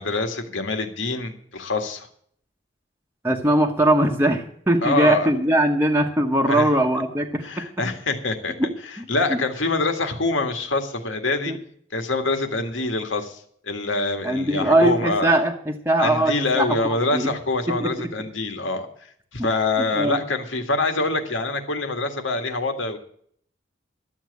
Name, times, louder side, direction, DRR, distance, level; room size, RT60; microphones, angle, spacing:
voice 1, 0.0-2.1 4.8-5.3 6.5-6.7 7.4-8.5 9.1-11.5 11.9-15.3 16.0-18.9 19.3-23.0, left 3 dB, 90° left, 6 dB, 1.9 m, -25 dB
voice 2, 3.2-7.6 8.6-9.0 9.3-9.4 11.5-11.6 14.2-17.3 17.7-17.9 19.9-20.2, right 1 dB, 10° right, 1 dB, 1.0 m, -21 dB
12.0 x 7.4 x 8.3 m, 0.63 s
head